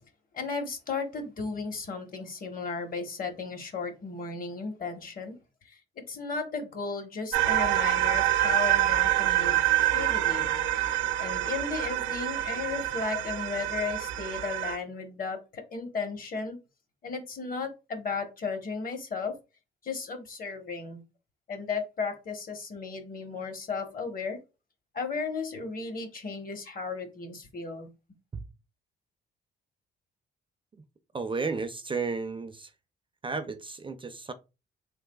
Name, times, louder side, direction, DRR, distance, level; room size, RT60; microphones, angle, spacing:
voice 1, 0.3-5.3 5.7-5.8 6.1-10.5 11.2-16.6 17.0-19.3 19.8-21.0 21.5-24.4 24.9-27.9, left 4 dB, 45° left, 1.0 m, -35 dB
sound 1, 7.3-14.8, right 14 dB, 90° right, 0.5 m, -26 dB
voice 2, 31.1-32.7 33.2-34.3, right 4 dB, 25° right, 0.4 m, -33 dB
3.3 x 3.3 x 2.2 m
cardioid pair, 90°, 20 cm